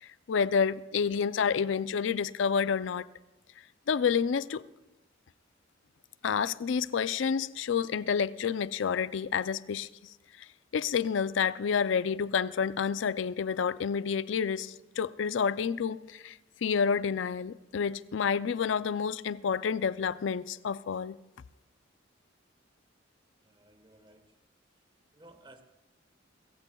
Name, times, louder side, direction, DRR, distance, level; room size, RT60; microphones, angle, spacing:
voice 1, 0.0-3.1 3.9-4.6 6.2-9.9 10.7-16.4 16.6-21.2, left 6 dB, 70° left, 0.4 m, -29 dB
voice 2, 23.4-24.3 25.1-25.6, right 2 dB, 25° right, 1.1 m, -56 dB
28.0 x 15.0 x 2.3 m
head